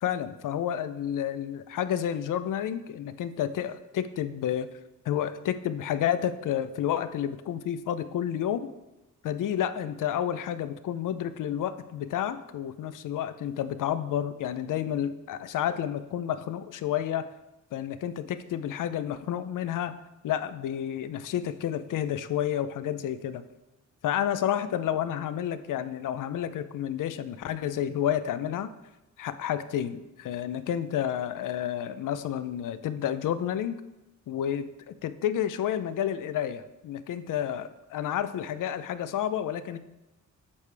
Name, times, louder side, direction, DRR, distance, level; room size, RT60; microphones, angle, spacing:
voice 1, 0.0-4.7 5.1-8.7 9.2-17.3 17.7-19.9 20.2-23.4 24.0-28.7 29.2-33.8 34.3-39.8, left 10 dB, 85° left, 12 dB, 0.5 m, -30 dB
8.4 x 6.6 x 3.3 m, 1.0 s
wide cardioid pair, 125°, 31 cm